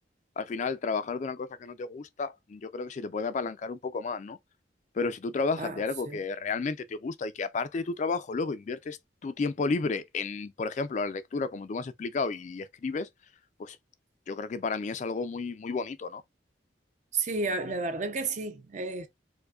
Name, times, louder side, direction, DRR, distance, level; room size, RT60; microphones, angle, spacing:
voice 1, 0.4-4.4 4.9-13.1 13.6-13.8 14.3-16.2, left 4 dB, 40° left, 0.3 m, -32 dB
voice 2, 5.6-6.2 17.1-19.1, right 3 dB, 40° right, 0.6 m, -32 dB
4.6 x 2.1 x 2.4 m
head